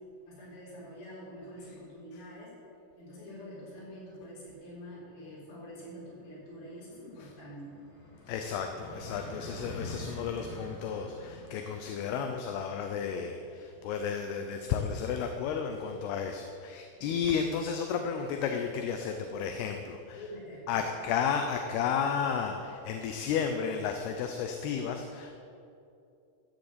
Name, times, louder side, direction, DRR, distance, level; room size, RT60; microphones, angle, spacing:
voice 1, 0.3-2.5 3.0-7.7 20.1-20.8, equal, 60° left, -8 dB, 6.2 m, -46 dB
sound 1, 4.6-16.1, left 1 dB, 30° left, 4.5 m, -48 dB
voice 2, 8.3-20.2 20.7-25.4, left 7 dB, 80° left, 5 dB, 2.7 m, -33 dB
14.0 x 7.9 x 8.2 m, 2.6 s
omnidirectional pair, 4.8 m